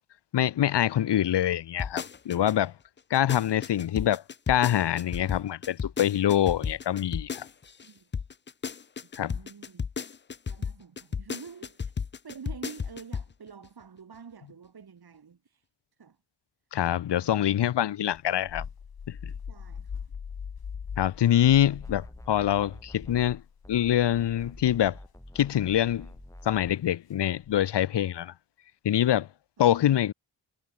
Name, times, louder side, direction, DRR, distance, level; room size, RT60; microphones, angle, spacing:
voice 1, 0.3-2.7 3.1-4.2 4.5-7.5 9.2-9.4 16.7-18.6 19.1-19.3 21.0-23.4 23.7-25.0 25.3-26.1 26.4-28.3 28.8-29.3 29.6-30.1, left 11 dB, 75° left, 0.6 m, -25 dB
sound 1, 1.8-2.5 3.0-13.3 13.6-13.7, left 6 dB, 30° left, 0.4 m, -34 dB
voice 2, 9.0-9.8 10.5-11.8 12.2-15.7 16.0-16.2 19.5-20.2, right 6 dB, 60° right, 2.9 m, -47 dB
sound 2, 18.1-24.0 24.4-24.8 25.9-26.2 27.4-27.8, left 6 dB, 60° left, 2.1 m, -41 dB
sound 3, 21.7-23.4 23.6-26.8, left 1 dB, 5° left, 3.9 m, -47 dB
wide cardioid pair, 160°, 42 cm